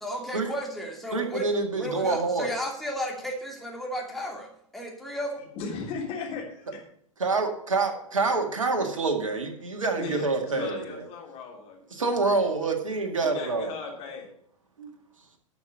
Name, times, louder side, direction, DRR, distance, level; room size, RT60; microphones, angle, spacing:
voice 1, 0.0-1.5 1.7-5.4, equal, ahead, -2 dB, 2.6 m, -33 dB
voice 2, 1.1-2.5 7.2-11.0 11.9-13.7 14.8-14.9, right 3 dB, 70° right, 4 dB, 2.1 m, -27 dB
voice 3, 5.4-6.8 9.9-11.8 13.2-14.3, left 4 dB, 35° left, 0 dB, 3.4 m, -36 dB
12.0 x 6.0 x 6.4 m, 0.68 s
figure-of-eight pair, 95°, 17 cm